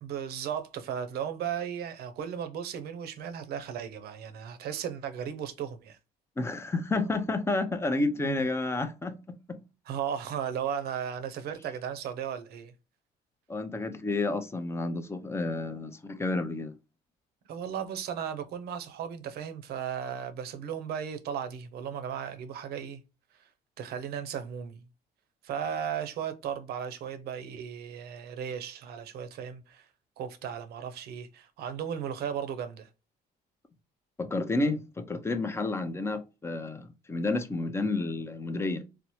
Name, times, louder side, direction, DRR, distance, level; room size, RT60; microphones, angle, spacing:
voice 1, 0.0-6.0 8.2-8.4 9.9-12.7 17.5-23.0 23.8-24.8 25.4-29.8 30.2-32.9, right 8 dB, 70° right, 0.6 m, -36 dB
voice 2, 6.4-9.6 13.5-16.7 34.2-38.8, left 2 dB, 15° left, 0.5 m, -30 dB
4.2 x 2.0 x 2.9 m
cardioid pair, 110°, 17 cm